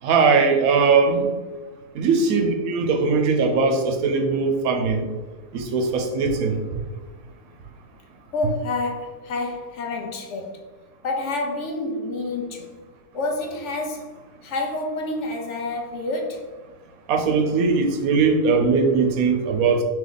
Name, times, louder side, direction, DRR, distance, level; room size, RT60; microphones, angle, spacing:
voice 1, 0.0-1.3 1.9-5.0 5.5-6.6 17.1-19.8, right 4 dB, 80° right, 5 dB, 1.1 m, -20 dB
voice 2, 8.3-10.6 11.0-12.7 13.1-14.1 14.4-16.5, left 2 dB, 65° left, 3 dB, 0.8 m, -28 dB
3.4 x 3.0 x 3.8 m, 1.3 s
omnidirectional pair, 1.5 m